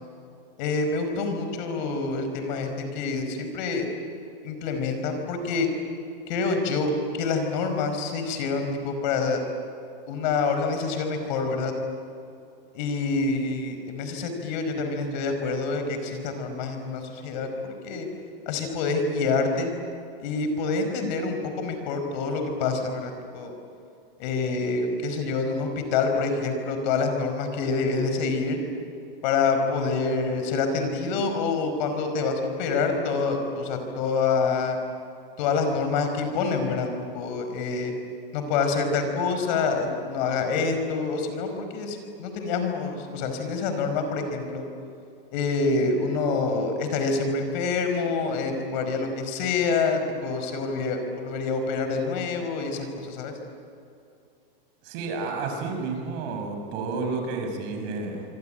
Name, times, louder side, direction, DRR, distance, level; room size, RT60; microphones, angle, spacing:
voice 1, 0.6-3.9 4.4-5.7 6.3-9.4 10.1-11.7 12.7-18.1 18.4-19.7 20.2-23.5 24.2-28.6 29.2-34.8 35.4-36.9 37.1-37.9 38.3-44.6 45.3-53.3, left 4 dB, 50° left, 6 dB, 5.1 m, -27 dB
voice 2, 54.8-58.2, right 4 dB, 45° right, 4 dB, 6.2 m, -31 dB
26.0 x 25.5 x 9.0 m, 2.5 s
supercardioid pair, 165°, 29 cm